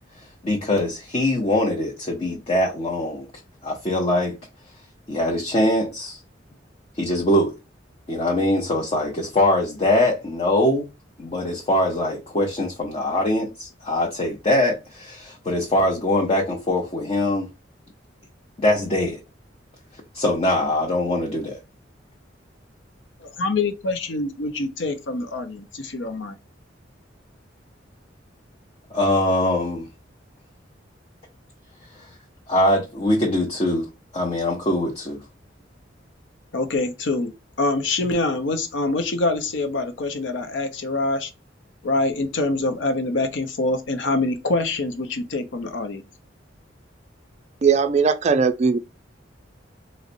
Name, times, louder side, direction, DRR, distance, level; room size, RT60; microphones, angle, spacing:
voice 1, 0.4-3.3 3.6-4.4 5.1-6.2 7.0-7.5 8.1-10.9 11.2-17.5 18.6-19.2 20.1-21.6 28.9-29.9 32.5-33.9 34.1-35.2, left 1 dB, 35° left, 0.7 m, -22 dB
voice 2, 23.2-26.3 36.5-37.3 37.6-41.3 41.8-46.0, left 2 dB, 75° left, 0.6 m, -25 dB
voice 3, 47.6-48.8, right 5 dB, 35° right, 0.4 m, -19 dB
4.1 x 2.1 x 2.5 m
head